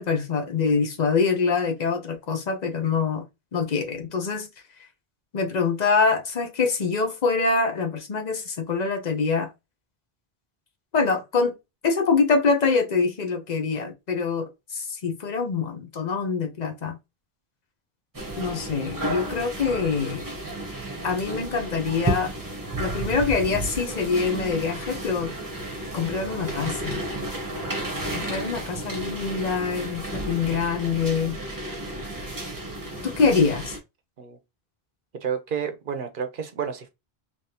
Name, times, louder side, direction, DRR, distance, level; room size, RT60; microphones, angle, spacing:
voice 1, 0.0-3.3 3.5-4.5 5.3-9.5 10.9-11.5 11.8-17.0 18.4-20.2 21.0-22.3 22.8-25.3 25.9-27.0 28.1-31.4 33.0-33.8, left 4 dB, 45° left, 0.8 m, -25 dB
sound 1, 18.1-33.8, right 1 dB, 20° right, 1.1 m, -32 dB
voice 2, 35.2-36.9, right 7 dB, 60° right, 0.8 m, -30 dB
3.3 x 3.0 x 2.8 m
omnidirectional pair, 1.0 m